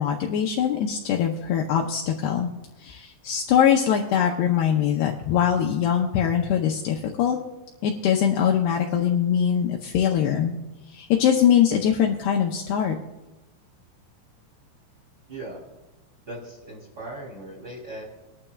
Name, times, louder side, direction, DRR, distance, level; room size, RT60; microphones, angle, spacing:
voice 1, 0.0-2.5 2.8-7.4 7.8-10.5 10.9-13.0, left 9 dB, 90° left, 0 dB, 2.3 m, -22 dB
voice 2, 15.3-15.6 16.3-18.0, right 2 dB, 25° right, -2 dB, 3.0 m, -38 dB
21.0 x 12.0 x 2.4 m, 1.0 s
omnidirectional pair, 5.7 m